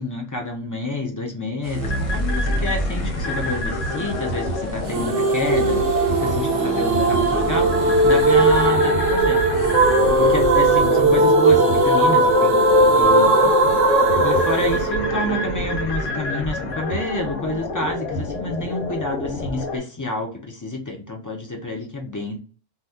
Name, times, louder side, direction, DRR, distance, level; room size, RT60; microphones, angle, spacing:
voice 1, 0.0-9.4 10.1-12.6 12.9-13.5 14.2-22.4, left 2 dB, 30° left, 1 dB, 0.3 m, -29 dB
sound 1, 1.6-8.8, equal, 30° right, 0.7 m, -31 dB
sound 2, 1.8-19.8, left 1 dB, 80° left, 1.1 m, -28 dB
sound 3, 4.9-15.9, right 2 dB, 60° right, 0.4 m, -18 dB
2.8 x 2.2 x 3.5 m, 0.39 s
omnidirectional pair, 1.3 m